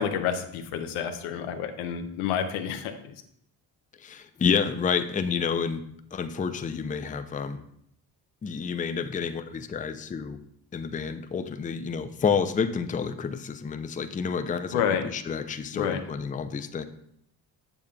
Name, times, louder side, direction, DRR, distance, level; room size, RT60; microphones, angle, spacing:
voice 1, 0.0-3.1 14.7-15.0 15.7-16.0, left 8 dB, 90° left, 7 dB, 0.7 m, -29 dB
voice 2, 4.0-5.8 6.1-7.6 8.4-10.4 10.7-16.8, left 6 dB, 15° left, 9 dB, 0.4 m, -29 dB
7.1 x 6.9 x 2.3 m, 0.71 s
supercardioid pair, 50°, 49 cm